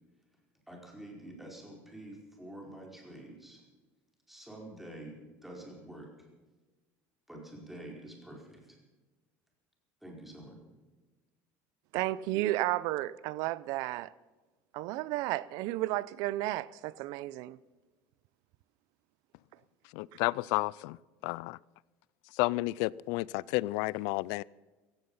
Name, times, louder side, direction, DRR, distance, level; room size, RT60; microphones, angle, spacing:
voice 1, 0.7-3.6 4.3-6.1 7.3-8.8 10.0-10.6, right 1 dB, 5° right, 4.8 m, -47 dB
voice 2, 11.9-14.1 14.7-17.6, right 16 dB, 65° right, 0.7 m, -33 dB
voice 3, 19.9-21.0 21.2-21.6 22.3-24.4, left 21 dB, 70° left, 0.4 m, -31 dB
16.0 x 15.5 x 5.7 m
cardioid pair, 140°, 7 cm